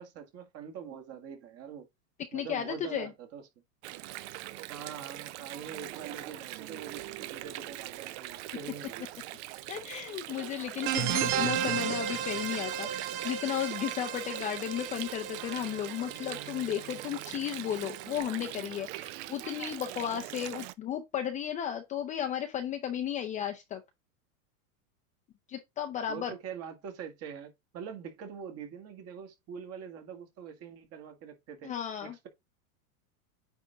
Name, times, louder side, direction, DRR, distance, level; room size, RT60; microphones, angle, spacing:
voice 1, 0.0-1.9 2.3-3.5 4.7-9.1 26.1-31.7 32.0-32.3, right 7 dB, 35° right, 2.0 m, -44 dB
voice 2, 2.3-3.1 9.7-12.9 13.2-23.8 25.5-26.3 31.6-32.1, left 10 dB, 20° left, 0.5 m, -34 dB
Water, 3.8-20.7, right 16 dB, 55° right, 0.6 m, -42 dB
sound 1, 10.8-18.1, right 9 dB, 75° right, 1.5 m, -34 dB
9.2 x 3.6 x 3.8 m
supercardioid pair, 150°, 41 cm